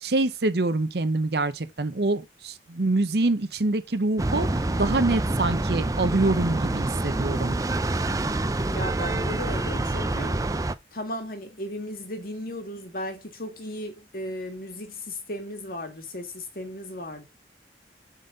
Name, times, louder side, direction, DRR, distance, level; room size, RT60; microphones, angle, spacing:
voice 1, 0.0-4.5 4.8-7.5, right 2 dB, 65° right, 0.8 m, -25 dB
sound 1, 4.2-10.7, right 2 dB, 20° right, 0.4 m, -26 dB
voice 2, 8.7-10.4 10.9-17.2, left 1 dB, 55° left, 1.8 m, -35 dB
7.5 x 4.1 x 5.3 m
head